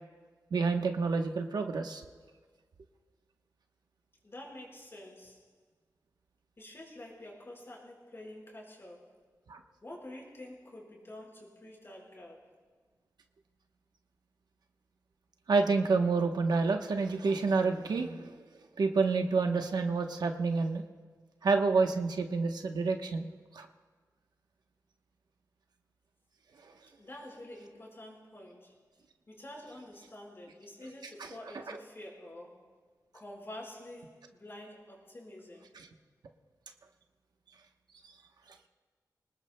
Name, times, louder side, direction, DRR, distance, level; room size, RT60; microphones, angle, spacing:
voice 1, 0.5-2.0 9.5-9.6 15.5-18.3 18.8-20.8 21.4-23.3 23.5-23.7 31.7-31.8 38.0-38.1, right 4 dB, 80° right, 4 dB, 1.0 m, -28 dB
voice 2, 4.2-5.4 6.6-9.2 9.8-12.5 27.0-28.7 29.3-32.6 33.1-35.7, left 1 dB, 35° left, -2 dB, 4.9 m, -48 dB
26.0 x 19.0 x 2.2 m, 1.5 s
wide cardioid pair, 100°, 7 cm